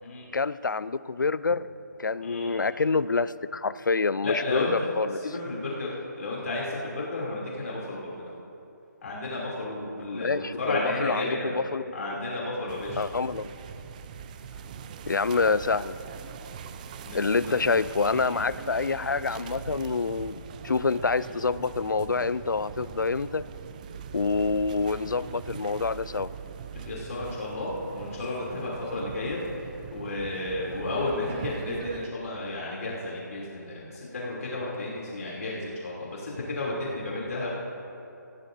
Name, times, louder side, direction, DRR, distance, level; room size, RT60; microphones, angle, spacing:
voice 1, 0.3-1.7 2.0-5.2 10.1-12.2 13.0-13.5 15.1-16.0 17.1-23.5 24.1-26.3, left 4 dB, 85° left, 17 dB, 0.4 m, -27 dB
voice 2, 2.2-2.5 4.2-4.9 5.2-5.9 6.2-8.1 9.0-11.5 11.9-13.0 15.3-15.4 17.0-17.5 18.2-18.4 26.8-29.4 29.9-37.5, left 2 dB, 55° left, -5 dB, 3.0 m, -32 dB
sound 1, 12.7-32.1, right 7 dB, 25° right, 0.5 m, -41 dB
20.5 x 15.5 x 2.7 m, 2.9 s
figure-of-eight pair, 150°, 10 cm